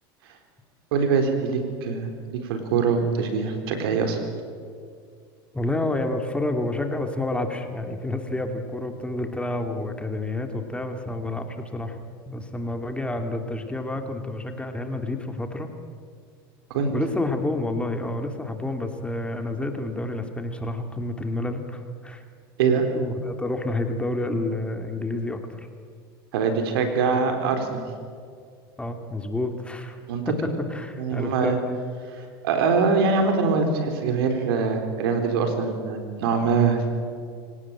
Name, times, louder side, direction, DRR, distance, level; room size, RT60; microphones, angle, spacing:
voice 1, 0.9-4.2 16.7-16.9 22.6-22.8 26.3-27.8 30.1-30.2 31.0-31.6 32.4-36.9, right 5 dB, 75° right, 6 dB, 4.1 m, -23 dB
voice 2, 5.5-12.0 12.3-15.7 16.9-22.2 22.9-25.7 27.1-27.2 28.8-30.0 30.3-31.6, left 2 dB, 10° left, 5 dB, 2.6 m, -29 dB
25.0 x 17.5 x 8.9 m, 2.2 s
hypercardioid pair, 95°, 12 cm